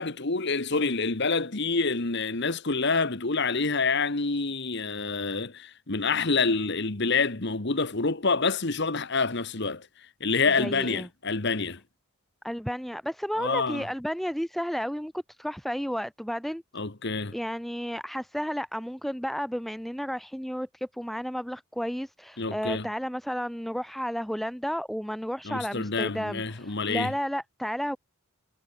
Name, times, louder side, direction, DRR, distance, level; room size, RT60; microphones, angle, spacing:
voice 1, 0.0-9.9 10.2-11.8 13.4-13.8 16.7-17.3 22.4-22.9 25.4-27.1, left 4 dB, 55° left, 1.6 m, -27 dB
voice 2, 10.6-11.1 12.4-16.6 17.3-28.0, equal, ahead, 0.9 m, -32 dB
head